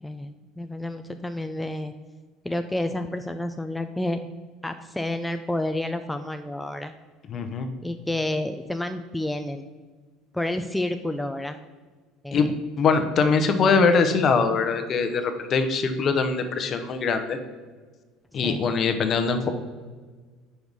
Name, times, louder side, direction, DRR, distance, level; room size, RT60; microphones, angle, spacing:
voice 1, 0.0-1.9 2.4-4.3 4.6-6.9 7.8-9.6 10.3-11.6 12.2-12.5 18.4-18.8, left 1 dB, 5° left, 8 dB, 0.4 m, -30 dB
voice 2, 7.3-7.7 12.3-12.5 12.8-17.4 18.3-19.5, left 5 dB, 45° left, 7 dB, 0.8 m, -22 dB
5.4 x 4.6 x 5.2 m, 1.4 s
supercardioid pair, 80°, 0 cm